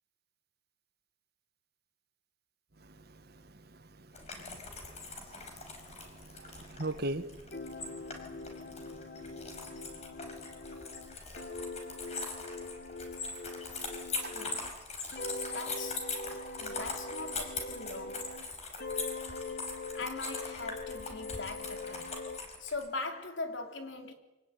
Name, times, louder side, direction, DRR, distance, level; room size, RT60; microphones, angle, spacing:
sound 1, 4.1-22.9, left 3 dB, 35° left, 5.2 m, -41 dB
voice 1, 5.9-7.8 8.3-9.9, right 1 dB, 60° right, 1.5 m, -41 dB
sound 2, 7.5-14.7 15.1-18.5 18.8-22.4, left 2 dB, 55° left, 1.7 m, -43 dB
voice 2, 14.3-14.8 15.5-16.1 16.6-18.4 19.9-22.1 22.6-24.1, left 3 dB, 85° left, 3.3 m, -41 dB
24.5 x 18.0 x 9.5 m
head